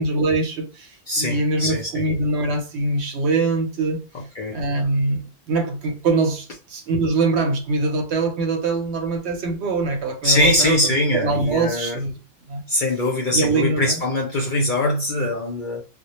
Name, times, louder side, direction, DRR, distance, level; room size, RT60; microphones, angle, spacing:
voice 1, 0.0-4.0 4.5-10.8 11.1-12.2 12.5-12.6 13.3-14.0, right 3 dB, 65° right, 0.8 m, -23 dB
voice 2, 1.1-2.0 4.3-4.6 10.2-12.0 12.7-15.8, left 1 dB, 55° left, 0.5 m, -22 dB
2.1 x 2.1 x 2.8 m
omnidirectional pair, 1.3 m